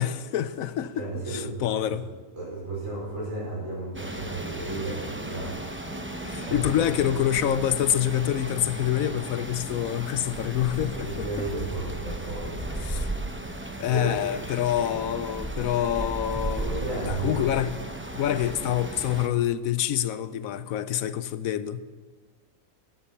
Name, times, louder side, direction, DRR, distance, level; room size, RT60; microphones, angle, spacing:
voice 1, 0.0-2.1 6.2-11.5 12.8-13.1 13.8-16.7 17.0-17.7 18.1-21.8, left 11 dB, 80° left, 1.1 m, -26 dB
voice 2, 1.0-1.5 1.9-2.0 2.3-5.5 6.4-6.9 10.9-13.1 13.9-14.1 16.6-17.4, right 2 dB, 65° right, 5.5 m, -33 dB
sound 1, 3.9-19.3, right 1 dB, 10° right, 0.7 m, -35 dB
14.0 x 10.5 x 5.6 m
omnidirectional pair, 1.5 m